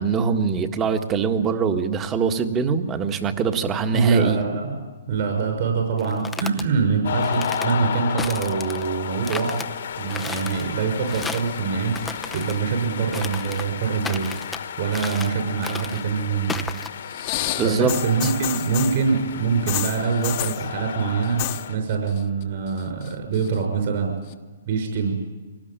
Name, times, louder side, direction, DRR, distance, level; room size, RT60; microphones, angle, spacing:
voice 1, 0.0-4.4 17.6-18.0 18.2-18.3, right 5 dB, 20° right, 7 dB, 1.7 m, -23 dB
voice 2, 3.9-4.8 5.1-9.6 10.0-14.3 14.8-16.7 17.6-24.2 24.7-25.2, right 5 dB, 50° right, 3 dB, 6.1 m, -24 dB
sound 1, 6.0-6.6 7.2-7.7 8.2-8.9 9.2-9.7 10.1-10.6 11.1-11.5 11.9-12.6 13.1-13.7 14.0-14.6 14.9-15.4 15.6-16.0 16.5-16.9, left 4 dB, 10° left, 0.7 m, -34 dB
sound 2, 7.0-21.8, left 8 dB, 70° left, 1.7 m, -33 dB
sound 3, 17.1-19.0 19.7-20.6 21.2-21.7 21.9-22.4 22.8-23.6 24.3-24.4, left 15 dB, 40° left, 1.2 m, -29 dB
24.5 x 19.0 x 9.0 m, 1.3 s
hypercardioid pair, 135°, 0 cm